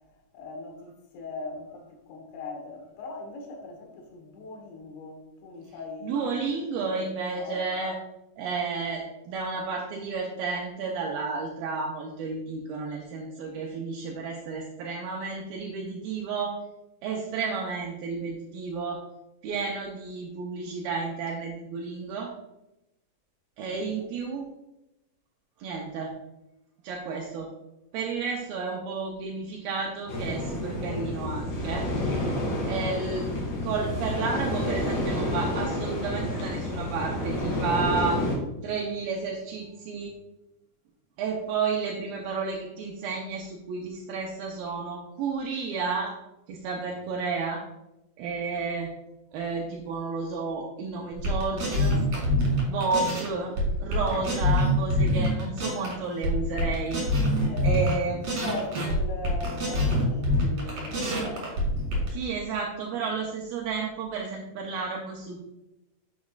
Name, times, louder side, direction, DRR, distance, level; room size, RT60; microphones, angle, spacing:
voice 1, 0.1-6.4 6.9-7.7 23.7-24.1 57.5-61.6 63.1-63.2, left 3 dB, 85° left, 2 dB, 3.5 m, -40 dB
voice 2, 6.0-8.0 8.4-16.6 17.0-19.0 19.4-22.3 23.6-24.5 25.6-26.1 26.8-27.5 27.9-31.9 32.7-33.3 33.6-38.2 38.6-40.1 41.2-46.1 46.5-47.6 48.2-48.9 49.3-52.0 52.6-57.1 57.6-58.2 62.1-65.4, right 4 dB, 80° right, -1 dB, 2.2 m, -31 dB
sound 1, 30.1-38.3, left 1 dB, 50° left, 3.3 m, -29 dB
sound 2, 51.1-53.3 53.6-55.9 56.2-57.9 58.2-62.1, left 1 dB, 40° right, 3.0 m, -25 dB
8.5 x 7.1 x 2.4 m, 0.93 s
omnidirectional pair, 4.9 m